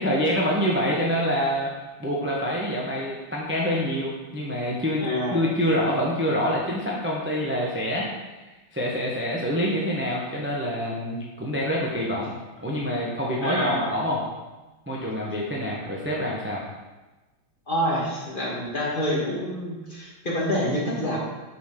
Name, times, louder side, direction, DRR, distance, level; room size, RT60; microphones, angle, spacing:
voice 1, 0.0-1.7 2.0-8.2 8.7-12.3 12.6-14.3 14.9-16.6, equal, 10° right, -4 dB, 0.6 m, -26 dB
voice 2, 5.0-5.4 13.4-13.9 17.7-21.2, equal, 25° left, -4 dB, 1.4 m, -27 dB
8.3 x 6.2 x 3.8 m, 1.1 s
omnidirectional pair, 2.3 m